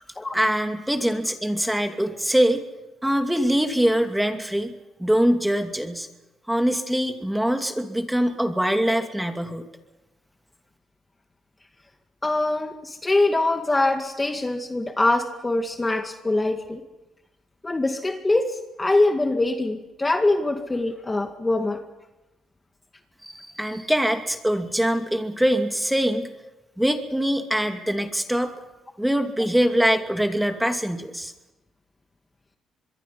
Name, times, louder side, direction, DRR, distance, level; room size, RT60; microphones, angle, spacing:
voice 1, 0.3-2.6 3.0-4.7 5.0-6.1 6.5-9.7 23.2-26.3 26.8-28.5 29.0-31.3, equal, 5° right, 5 dB, 2.5 m, -23 dB
voice 2, 12.2-16.8 17.6-21.8, left 2 dB, 20° left, 5 dB, 2.1 m, -23 dB
25.5 x 22.0 x 5.7 m, 1.0 s
cardioid pair, 90°, 0 cm